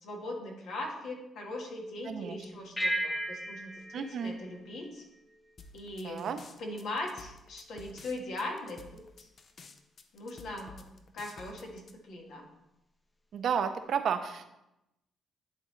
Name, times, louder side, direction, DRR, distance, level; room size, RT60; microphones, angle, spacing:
voice 1, 0.0-5.0 5.7-6.2 6.6-9.3 10.1-10.9 11.1-12.5, left 2 dB, 75° left, 0 dB, 1.6 m, -40 dB
voice 2, 2.0-2.4 3.9-4.3 6.0-6.4 13.3-14.5, right 7 dB, 65° right, 8 dB, 0.6 m, -32 dB
sound 1, 2.8-5.5, right 1 dB, 10° left, 0.7 m, -36 dB
sound 2, 5.6-11.9, left 3 dB, 50° left, 0.6 m, -51 dB
11.0 x 3.7 x 3.2 m, 0.89 s
cardioid pair, 90°, 0 cm